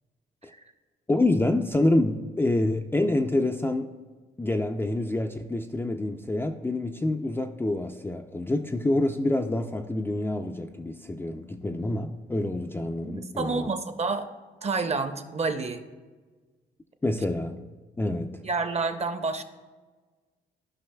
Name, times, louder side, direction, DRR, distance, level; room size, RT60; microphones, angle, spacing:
voice 1, 1.1-3.9 4.4-13.7 17.0-17.7 18.0-18.4, left 2 dB, 10° left, 4 dB, 0.4 m, -27 dB
voice 2, 13.0-14.3 14.6-15.8 18.1-19.4, right 4 dB, 35° right, 8 dB, 0.7 m, -29 dB
14.5 x 5.4 x 2.2 m, 1.3 s
cardioid pair, 90°, 20 cm